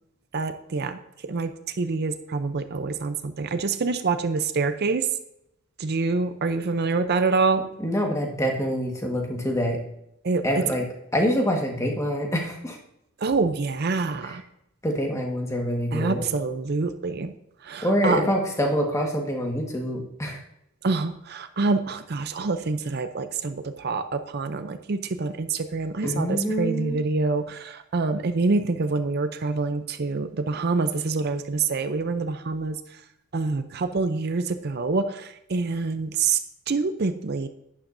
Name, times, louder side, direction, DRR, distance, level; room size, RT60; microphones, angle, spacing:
voice 1, 0.3-1.5 1.8-5.1 5.8-7.6 10.2-10.6 13.2-14.4 15.9-17.3 17.6-18.3 20.8-32.8 33.3-36.4 36.7-37.5, right 4 dB, 50° right, 9 dB, 0.5 m, -26 dB
voice 2, 7.8-9.8 10.4-10.8 11.1-12.8 14.2-14.4 14.8-16.3 17.8-20.4 26.0-27.0, equal, 15° left, 1 dB, 1.5 m, -25 dB
11.5 x 9.8 x 2.6 m, 0.80 s
head